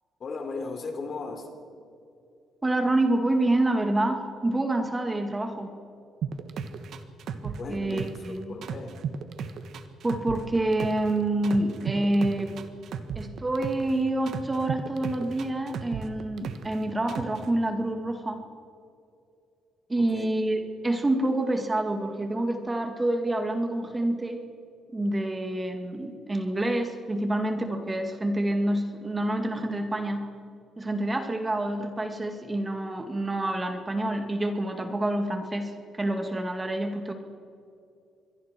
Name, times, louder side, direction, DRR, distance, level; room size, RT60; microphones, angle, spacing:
voice 1, 0.2-1.5 7.6-9.0 20.0-20.3, left 4 dB, 50° left, 5 dB, 3.7 m, -36 dB
voice 2, 2.6-5.7 7.4-8.6 10.0-12.5 13.2-18.4 19.9-24.4 24.9-30.3 30.8-37.1, right 1 dB, 20° right, 5 dB, 2.2 m, -27 dB
sound 1, 6.2-8.3 8.6-11.1 11.4-13.9 14.3-16.8 17.1-17.5, right 7 dB, 70° right, 1.5 m, -34 dB
27.0 x 22.0 x 4.6 m, 2.5 s
cardioid pair, 90°, 0 cm